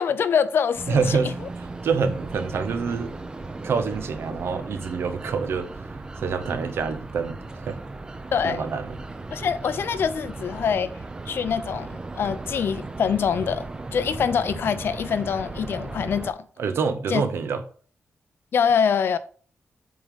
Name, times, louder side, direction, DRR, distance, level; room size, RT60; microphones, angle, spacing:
voice 1, 0.0-1.3 8.3-8.6 9.3-10.9 11.3-11.9 12.1-13.6 13.9-16.4 17.1-17.2 18.5-19.2, left 7 dB, 60° left, 0.6 m, -24 dB
sound 1, 0.7-16.3, right 3 dB, 20° right, 0.6 m, -36 dB
voice 2, 0.9-1.4 1.8-3.1 3.6-7.8 8.4-9.0 16.6-17.6, right 5 dB, 70° right, 0.9 m, -26 dB
7.8 x 3.8 x 5.1 m
wide cardioid pair, 160°, 4 cm